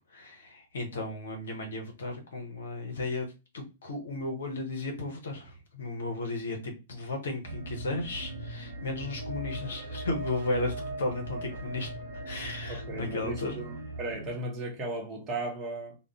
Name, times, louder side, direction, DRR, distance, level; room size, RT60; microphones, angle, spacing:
voice 1, 0.1-3.3 3.5-11.9 12.3-13.6, left 2 dB, 60° left, 0.9 m, -34 dB
sound 1, 7.4-14.3, right 1 dB, 60° right, 0.6 m, -39 dB
voice 2, 12.7-16.0, right 2 dB, 25° right, 0.9 m, -36 dB
2.5 x 2.2 x 3.4 m
figure-of-eight pair, 105°, 0 cm